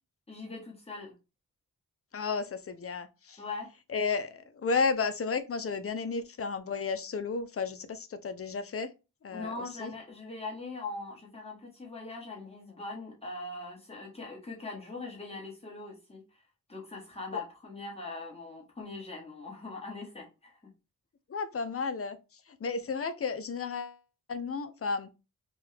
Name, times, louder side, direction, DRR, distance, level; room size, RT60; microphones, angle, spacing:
voice 1, 0.3-1.1 3.4-3.7 9.3-16.4 16.7-20.7, left 3 dB, 15° left, 1.2 m, -41 dB
voice 2, 2.1-3.4 3.9-8.9 9.2-9.9 17.3-17.4 21.3-24.0 24.3-25.1, left 4 dB, 45° left, 0.5 m, -33 dB
3.4 x 2.2 x 3.2 m
wide cardioid pair, 115°, 34 cm